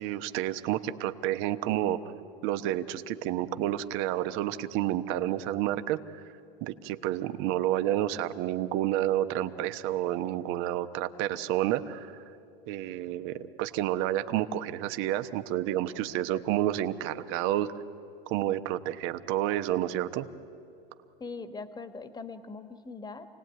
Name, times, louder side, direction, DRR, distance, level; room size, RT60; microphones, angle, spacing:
voice 1, 0.0-2.0 2.4-6.0 6.6-12.2 12.7-17.7 18.3-20.3, right 13 dB, 45° right, 11 dB, 1.2 m, -30 dB
voice 2, 21.2-23.3, left 4 dB, 15° left, 10 dB, 1.6 m, -41 dB
28.0 x 18.5 x 9.4 m, 2.6 s
hypercardioid pair, 105°, 29 cm